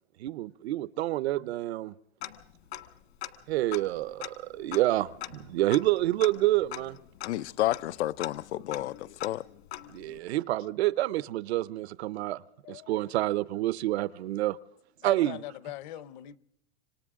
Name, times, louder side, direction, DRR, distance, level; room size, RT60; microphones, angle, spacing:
voice 1, 0.2-1.9 3.5-7.0 9.9-12.4 12.7-14.6 15.0-15.4, right 16 dB, 70° right, 0.8 m, -28 dB
Tick-tock, 2.2-3.0 3.2-3.3 3.7-10.2, left 14 dB, 65° left, 1.8 m, -42 dB
voice 2, 7.2-9.4, left 14 dB, 90° left, 0.7 m, -31 dB
voice 3, 12.6-13.1 15.0-16.4, left 14 dB, 45° left, 0.8 m, -42 dB
27.5 x 25.5 x 3.7 m
supercardioid pair, 175°, 33 cm